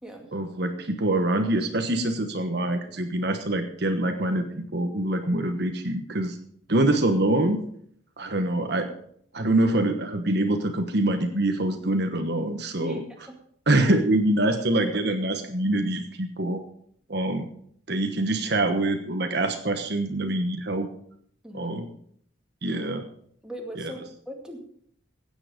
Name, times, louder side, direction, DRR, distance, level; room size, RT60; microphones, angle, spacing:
voice 1, 0.3-6.4 6.7-7.6 8.2-8.9 9.3-13.0 13.7-16.6 17.1-17.5 17.9-20.9 21.5-21.9 22.6-23.0, right 1 dB, 55° right, 6 dB, 1.2 m, -25 dB
voice 2, 21.4-21.8 23.4-24.6, equal, 5° right, 0 dB, 2.2 m, -39 dB
16.0 x 8.7 x 5.1 m, 0.64 s
head